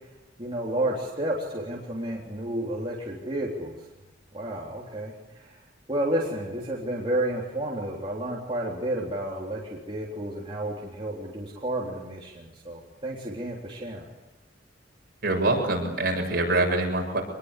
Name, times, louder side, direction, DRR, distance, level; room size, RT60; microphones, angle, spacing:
voice 1, 0.4-3.8 4.3-5.6 5.9-14.1, right 1 dB, 30° right, -4 dB, 3.6 m, -31 dB
voice 2, 15.2-17.2, right 2 dB, 55° right, 1 dB, 7.8 m, -24 dB
26.0 x 21.5 x 8.4 m, 1.1 s
head